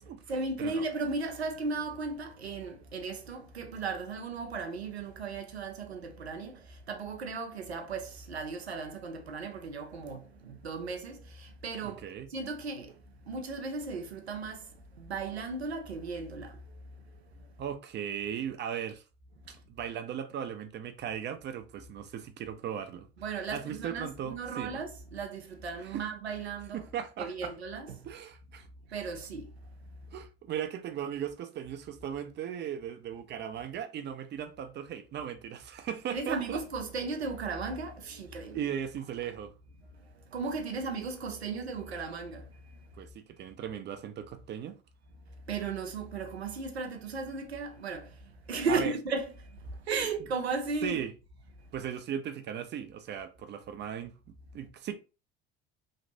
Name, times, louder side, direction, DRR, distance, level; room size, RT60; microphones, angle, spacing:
voice 1, 0.0-12.0 12.3-16.6 19.5-19.6 23.2-26.9 27.2-28.1 28.9-29.5 36.1-38.7 40.1-42.8 45.5-51.0, right 4 dB, 90° right, 0.5 m, -36 dB
voice 2, 11.8-12.3 17.6-19.0 19.7-23.1 23.5-24.8 25.9-26.0 26.7-27.5 28.1-28.7 30.1-36.6 38.5-39.5 43.0-44.8 48.7-48.9 50.8-51.1 51.7-54.1 54.5-54.9, right 9 dB, 35° right, 0.6 m, -37 dB
3.0 x 2.5 x 2.7 m
figure-of-eight pair, 65°, 31 cm